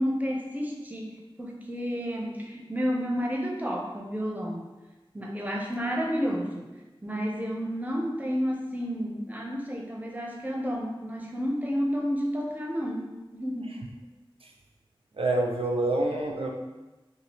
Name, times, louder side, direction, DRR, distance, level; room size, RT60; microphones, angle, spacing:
voice 1, 0.0-4.7 5.1-6.7 7.0-13.8, equal, 15° right, -1 dB, 0.6 m, -31 dB
voice 2, 15.1-16.5, right 2 dB, 85° right, 1 dB, 0.3 m, -27 dB
2.7 x 2.4 x 3.2 m, 1.1 s
wide cardioid pair, 45°, 9 cm